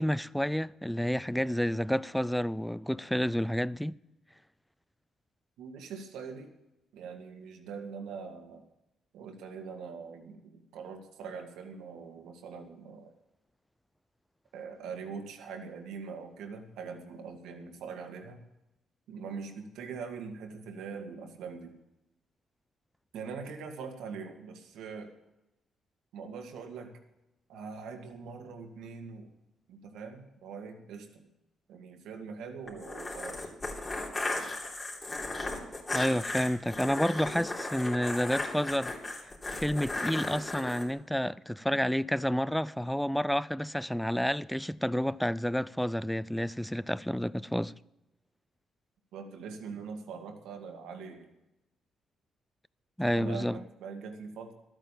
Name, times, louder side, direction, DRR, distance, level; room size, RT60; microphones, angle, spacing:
voice 1, 0.0-4.0 35.9-47.7 53.0-53.6, equal, 5° left, 0.4 m, -30 dB
voice 2, 5.6-6.5 6.9-8.6 9.1-13.1 14.5-18.4 19.1-21.7 23.1-25.1 26.1-26.9 27.5-29.3 29.7-31.3 31.7-33.5 49.1-51.3 53.0-54.5, right 5 dB, 85° right, 1.9 m, -42 dB
sound 1, 32.7-40.8, left 2 dB, 25° left, 3.5 m, -36 dB
12.5 x 8.9 x 7.4 m
cardioid pair, 90°, 0 cm